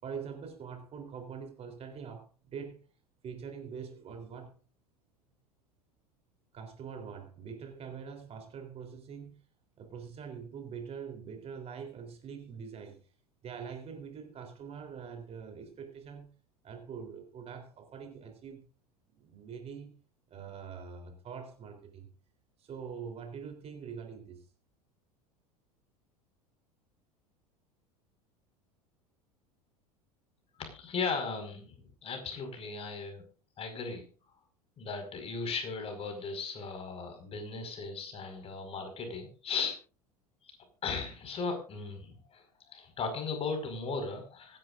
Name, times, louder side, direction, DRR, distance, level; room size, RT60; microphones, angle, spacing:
voice 1, 0.0-2.8 3.2-4.5 6.5-9.4 9.8-13.0 13.4-16.3 16.6-18.7 19.2-19.9 20.3-22.1 22.6-24.5, right 6 dB, 30° right, 5 dB, 3.7 m, -44 dB
voice 2, 30.6-33.2 33.6-34.0 34.8-39.8 40.8-42.4 42.7-44.6, left 4 dB, 30° left, 6 dB, 5.2 m, -37 dB
25.5 x 11.0 x 2.6 m, 0.36 s
figure-of-eight pair, 75°, 19 cm